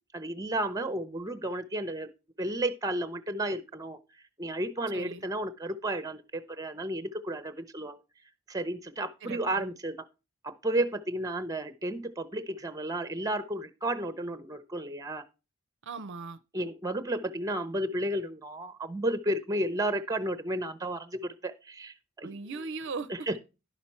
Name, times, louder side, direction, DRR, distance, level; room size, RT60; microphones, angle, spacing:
voice 1, 0.1-2.1 2.4-4.0 4.4-8.0 8.5-10.0 10.4-15.2 16.5-22.3 23.1-23.4, right 1 dB, 15° right, 0.7 m, -32 dB
voice 2, 15.8-16.4 22.2-23.1, right 4 dB, 55° right, 0.5 m, -38 dB
11.0 x 5.8 x 4.3 m
head